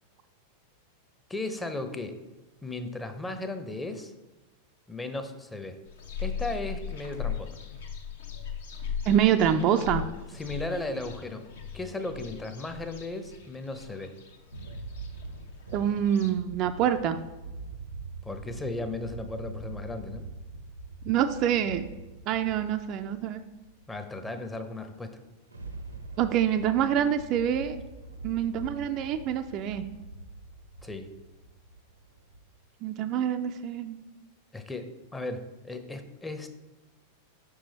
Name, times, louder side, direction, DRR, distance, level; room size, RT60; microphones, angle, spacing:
voice 1, 1.3-2.2 2.6-4.1 4.9-5.8 6.2-7.6 10.3-11.4 11.7-14.1 18.2-20.2 23.9-25.2 30.8-31.1 34.5-36.5, left 2 dB, 10° left, 7 dB, 0.6 m, -36 dB
sound 1, 5.9-16.3, left 7 dB, 65° left, 0.8 m, -39 dB
voice 2, 9.1-10.0 15.7-17.2 21.0-21.9 22.3-23.4 26.2-27.8 28.2-29.8 32.8-34.0, right 9 dB, 40° right, 7 dB, 0.3 m, -26 dB
sound 2, 13.5-13.6 14.1-23.9 25.2-32.4, right 3 dB, 80° right, 0.6 m, -43 dB
5.8 x 4.8 x 4.0 m, 1.1 s
figure-of-eight pair, 90°, 0 cm